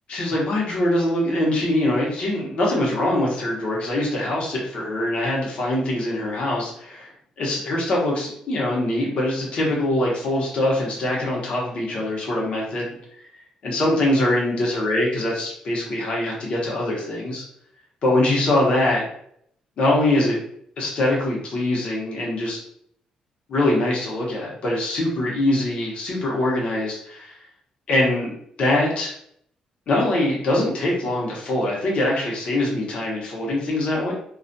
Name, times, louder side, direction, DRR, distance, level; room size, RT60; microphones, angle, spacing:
voice 1, 0.1-7.1 7.4-12.9 13.6-17.4 18.0-19.0 19.8-20.4 20.8-22.6 23.5-27.4 27.9-28.3 28.6-29.1 29.9-34.1, left 1 dB, 55° left, -3 dB, 0.8 m, -23 dB
2.3 x 2.1 x 2.6 m, 0.67 s
cardioid pair, 115°, 2 cm